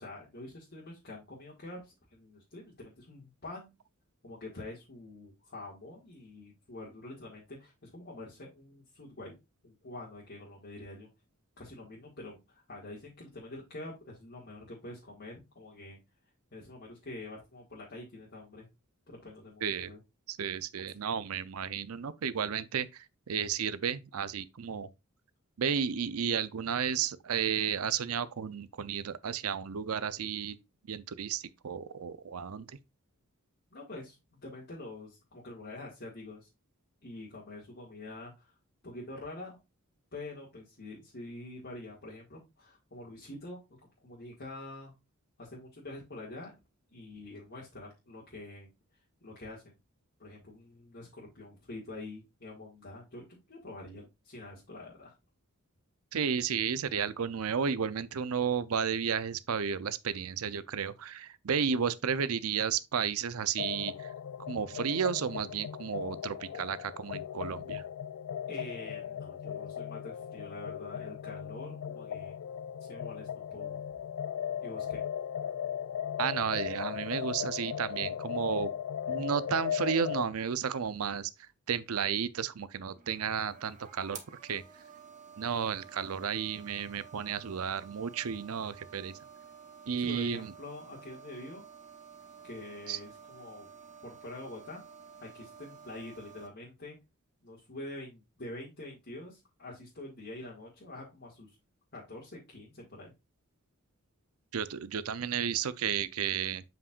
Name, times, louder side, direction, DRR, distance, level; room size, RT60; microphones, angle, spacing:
voice 1, 0.0-3.7 4.2-9.3 9.6-11.1 11.6-16.0 16.5-18.7 19.1-20.0 33.7-34.2 34.4-36.5 37.0-38.5 38.8-39.6 40.1-43.6 44.0-44.9 45.4-46.5 46.9-48.7 49.2-49.8 50.2-55.1 68.5-72.3 72.8-73.8 74.6-75.0 90.0-91.6 92.4-93.7 94.0-97.0 97.4-101.5 101.9-103.1, left 2 dB, 50° left, 1.9 m, -46 dB
voice 2, 19.6-19.9 20.3-24.9 25.6-30.6 30.9-32.7 56.1-64.1 64.5-67.8 76.2-78.7 79.1-81.3 81.7-84.6 85.4-89.2 89.9-90.5 92.9-93.0 104.5-106.6, right 7 dB, 80° right, 0.6 m, -33 dB
sound 1, 63.6-80.2, left 9 dB, 70° left, 0.3 m, -37 dB
sound 2, 82.9-96.5, right 7 dB, 35° right, 1.1 m, -52 dB
7.4 x 5.7 x 2.4 m
head